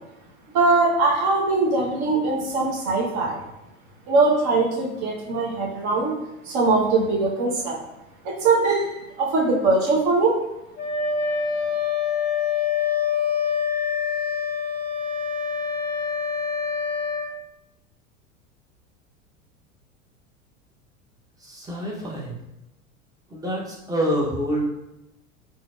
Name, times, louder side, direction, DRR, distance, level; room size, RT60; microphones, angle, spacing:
voice 1, 0.5-3.5 4.1-6.1 6.4-7.8 8.2-10.4, right 3 dB, 45° right, -1 dB, 0.9 m, -21 dB
Wind instrument woodwind instrument, 10.8-17.3, left 6 dB, 25° left, 1.0 m, -25 dB
voice 2, 21.4-22.3 23.3-24.7, equal, 10° right, -3 dB, 0.7 m, -26 dB
3.6 x 2.6 x 2.4 m, 0.90 s
hypercardioid pair, 90°, 41 cm